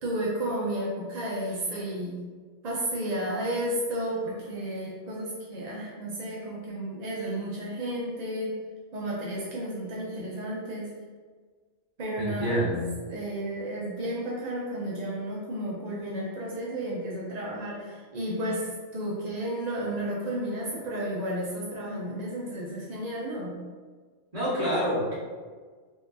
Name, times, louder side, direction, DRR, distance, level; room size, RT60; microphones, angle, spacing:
voice 1, 0.0-2.2 2.6-8.5 8.9-10.9 12.0-12.7 13.1-23.5, right 1 dB, 55° right, -5 dB, 0.4 m, -32 dB
voice 2, 12.2-12.8 24.3-25.1, equal, 30° right, -10 dB, 1.5 m, -27 dB
3.7 x 2.9 x 2.6 m, 1.5 s
omnidirectional pair, 1.4 m